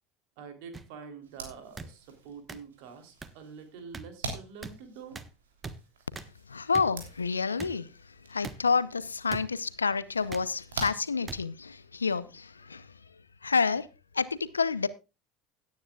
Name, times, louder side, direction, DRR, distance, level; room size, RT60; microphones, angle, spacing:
voice 1, 0.4-5.2, right 6 dB, 60° right, 3.3 m, -46 dB
sound 1, 0.7-0.8 1.8-1.9 2.5-2.6 3.2-3.3 3.9-4.0 4.6-4.7 5.2-5.3 5.6-5.8 6.2-6.3 6.7-6.9 7.6-7.7 8.4-8.6 9.3-9.4 10.3-10.5 11.3-11.4 12.2-12.4, right 4 dB, 25° right, 1.2 m, -40 dB
sound 2, 1.2-11.9, right 4 dB, 80° right, 3.2 m, -46 dB
voice 2, 6.5-7.9 8.3-12.9 13.4-13.9 14.1-14.9, left 5 dB, 90° left, 0.7 m, -29 dB
17.0 x 9.6 x 2.4 m
figure-of-eight pair, 70°, 0 cm